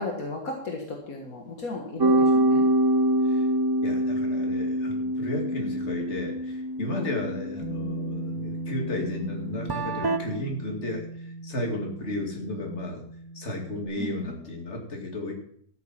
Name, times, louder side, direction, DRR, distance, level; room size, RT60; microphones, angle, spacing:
voice 1, 0.0-2.7 6.9-7.1 14.0-14.1, left 3 dB, 65° left, 0 dB, 2.1 m, -34 dB
sound 1, 2.0-10.2, right 1 dB, 35° right, 0.3 m, -26 dB
voice 2, 3.8-13.0 13.3-15.3, left 1 dB, 45° left, 1 dB, 2.6 m, -33 dB
Bass guitar, 7.6-13.9, right 2 dB, 25° left, 1.4 m, -38 dB
13.0 x 7.6 x 5.7 m, 0.64 s
omnidirectional pair, 1.6 m